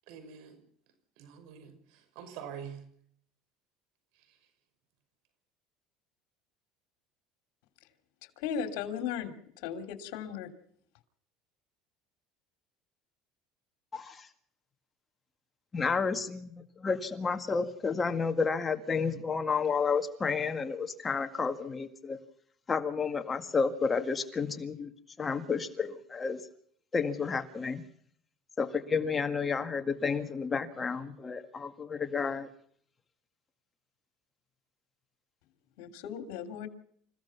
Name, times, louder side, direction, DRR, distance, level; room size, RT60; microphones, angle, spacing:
voice 1, 0.1-0.6 1.2-2.8, right 8 dB, 75° right, 9 dB, 5.7 m, -45 dB
voice 2, 8.4-9.3 9.6-10.5 35.8-36.7, left 7 dB, 80° left, 8 dB, 3.1 m, -36 dB
voice 3, 13.9-14.3 15.7-22.2 22.7-24.9 25.2-26.4 26.9-27.8 28.6-32.5, left 5 dB, 25° left, 7 dB, 1.9 m, -31 dB
28.5 x 16.0 x 5.9 m, 0.63 s
supercardioid pair, 120°, 0 cm